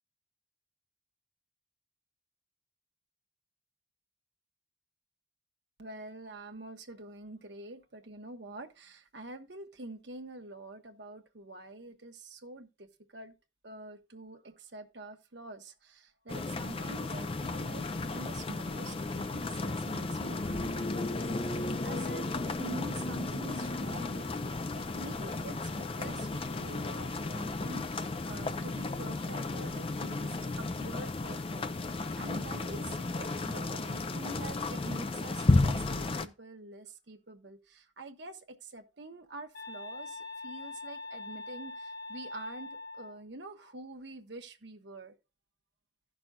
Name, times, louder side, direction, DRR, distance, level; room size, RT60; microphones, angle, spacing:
voice 1, 5.8-13.3 13.6-45.2, right 2 dB, 65° right, 1.1 m, -47 dB
sound 1, 16.3-36.3, left 2 dB, 30° left, 0.5 m, -33 dB
sound 2, 20.2-20.4 21.4-22.0 23.1-23.9 24.7-25.5 26.4-27.1 28.4-29.0 32.3-32.9, left 3 dB, 80° left, 1.6 m, -56 dB
sound 3, 39.5-43.2, left 3 dB, 55° left, 1.9 m, -43 dB
16.0 x 6.0 x 2.3 m
head